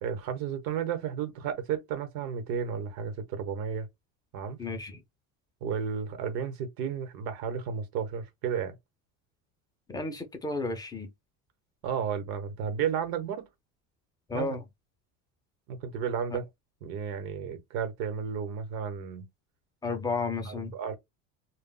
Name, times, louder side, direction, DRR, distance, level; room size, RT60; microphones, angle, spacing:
voice 1, 0.0-3.9 4.3-4.6 5.6-8.8 11.8-13.5 14.3-14.6 15.7-16.5 16.8-19.3 20.4-21.0, right 7 dB, 70° right, 1.0 m, -33 dB
voice 2, 4.6-5.0 9.9-11.1 14.3-14.6 19.8-20.7, left 3 dB, 10° left, 0.3 m, -32 dB
2.2 x 2.0 x 3.7 m
cardioid pair, 145°, 38 cm